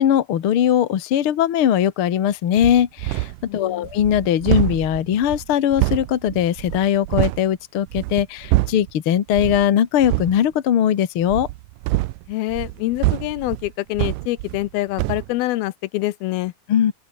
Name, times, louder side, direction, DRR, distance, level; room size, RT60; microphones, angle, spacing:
voice 1, 0.0-11.5 16.7-16.9, left 10 dB, 50° left, 1.7 m, -20 dB
sound 1, 2.6-3.5 3.8-7.5 7.9-8.9 9.3-9.7 10.0-10.4 11.2-14.7 15.0-15.3, right 20 dB, 85° right, 1.8 m, -25 dB
voice 2, 3.5-3.9 12.3-16.5, left 18 dB, 85° left, 2.6 m, -26 dB
open air
omnidirectional pair, 4.3 m